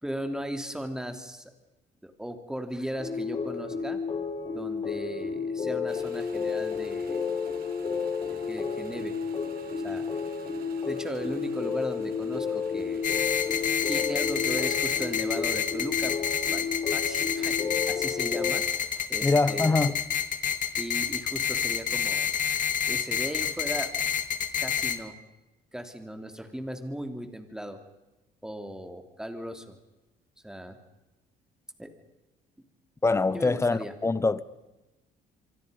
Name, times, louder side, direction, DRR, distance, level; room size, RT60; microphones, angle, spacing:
voice 1, 0.0-1.5 2.0-4.0 4.5-7.3 8.3-9.2 9.8-10.1 10.9-13.0 13.9-16.1 16.5-16.7 16.9-18.6 18.9-19.8 20.8-22.3 22.9-23.9 24.6-25.2 25.7-27.8 28.4-29.8 30.4-30.8 31.8-31.9 33.3-33.9, equal, 5° right, 3.1 m, -37 dB
sound 1, 3.0-18.5, left 5 dB, 30° left, 4.6 m, -31 dB
Motorcycle / Engine, 5.9-15.4, right 7 dB, 65° right, 3.9 m, -50 dB
sound 2, 13.0-25.0, left 8 dB, 50° left, 2.0 m, -28 dB
voice 2, 19.2-20.0 33.0-34.4, left 3 dB, 15° left, 1.1 m, -24 dB
26.5 x 24.5 x 5.3 m
cardioid pair, 110°, 17 cm